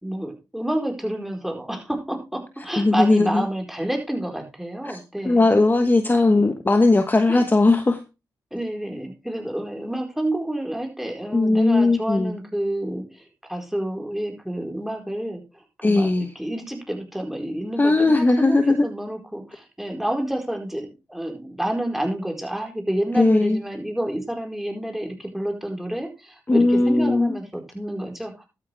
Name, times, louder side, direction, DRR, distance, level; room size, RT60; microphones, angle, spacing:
voice 1, 0.0-5.5 6.3-6.4 7.3-7.4 8.5-28.4, right 1 dB, 5° right, 1 dB, 4.5 m, -29 dB
voice 2, 2.8-3.4 4.8-5.0 5.2-8.0 11.3-12.3 15.8-16.3 17.8-18.9 23.1-23.6 26.5-27.4, left 2 dB, 25° left, 8 dB, 1.1 m, -18 dB
12.5 x 8.6 x 3.4 m, 0.28 s
cardioid pair, 65°, 8 cm